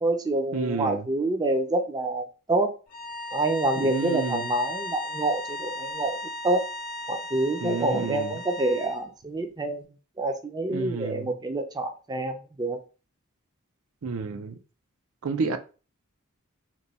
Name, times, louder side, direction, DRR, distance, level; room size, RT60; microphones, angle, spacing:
voice 1, 0.0-2.7 3.3-6.2 6.4-6.7 7.1-12.8, right 2 dB, 20° right, 0.4 m, -27 dB
voice 2, 0.5-1.1 3.8-4.5 7.6-8.4 10.7-11.3 14.0-14.5 15.2-15.6, right 4 dB, 85° right, 0.5 m, -30 dB
sound 1, 2.9-9.0, left 1 dB, 45° left, 0.7 m, -36 dB
2.9 x 2.2 x 4.0 m
head